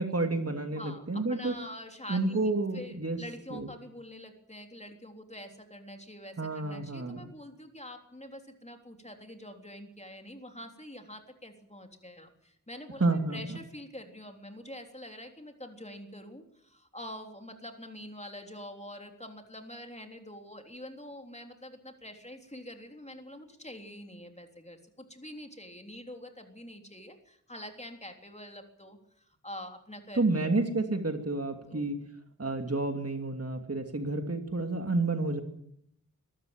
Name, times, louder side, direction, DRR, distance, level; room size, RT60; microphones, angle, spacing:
voice 1, 0.0-1.5 2.1-3.2 3.5-3.7 6.4-7.2 13.0-13.4 30.2-32.0 32.4-35.4, right 2 dB, 50° right, 5 dB, 2.8 m, -30 dB
voice 2, 0.7-30.6 31.7-31.9, left 1 dB, 20° left, 4 dB, 3.5 m, -46 dB
23.0 x 13.0 x 8.9 m, 0.72 s
wide cardioid pair, 60°, 32 cm